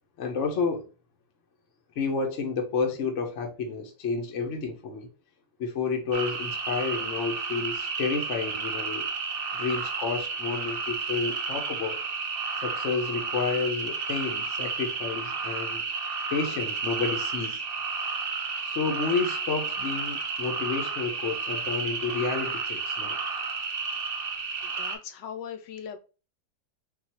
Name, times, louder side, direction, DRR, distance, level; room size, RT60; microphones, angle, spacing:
voice 1, 0.2-0.9 2.0-5.1 5.6-9.0 9.5-12.0 12.6-15.8 16.3-17.6 18.6-23.2, left 5 dB, 55° left, 0.9 m, -30 dB
sound 1, 6.1-24.9, right 4 dB, 65° right, 0.5 m, -32 dB
voice 2, 24.6-26.0, left 8 dB, 75° left, 1.2 m, -40 dB
3.9 x 2.4 x 4.2 m
omnidirectional pair, 2.1 m